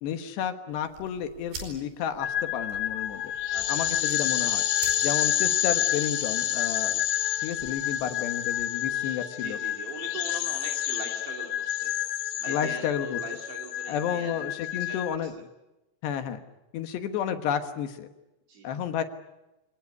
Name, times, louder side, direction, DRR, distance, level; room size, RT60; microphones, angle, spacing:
voice 1, 0.0-3.2 3.7-4.6 5.0-7.0 7.4-9.6 12.5-13.2 13.9-15.3 16.0-16.4 16.7-18.1 18.6-19.0, left 9 dB, 70° left, 8 dB, 3.1 m, -31 dB
sound 1, 0.7-8.6, right 4 dB, 50° right, 6.5 m, -47 dB
sound 2, 2.2-15.2, left 11 dB, 85° left, 2.0 m, -29 dB
voice 2, 8.9-11.9 12.4-15.4 18.5-18.7, right 5 dB, 65° right, 2 dB, 4.5 m, -42 dB
26.5 x 19.0 x 9.6 m, 0.99 s
omnidirectional pair, 5.7 m